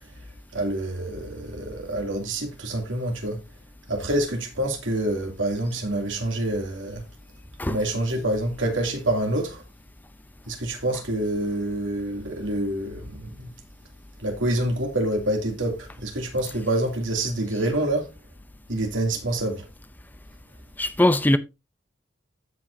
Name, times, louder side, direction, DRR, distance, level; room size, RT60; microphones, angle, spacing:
voice 1, 0.5-3.4 3.9-7.0 7.7-9.6 10.5-13.5 14.2-18.1 18.7-19.7, right 1 dB, 70° right, 2.7 m, -27 dB
voice 2, 20.8-21.4, left 1 dB, 10° left, 0.5 m, -20 dB
15.5 x 5.4 x 2.7 m
head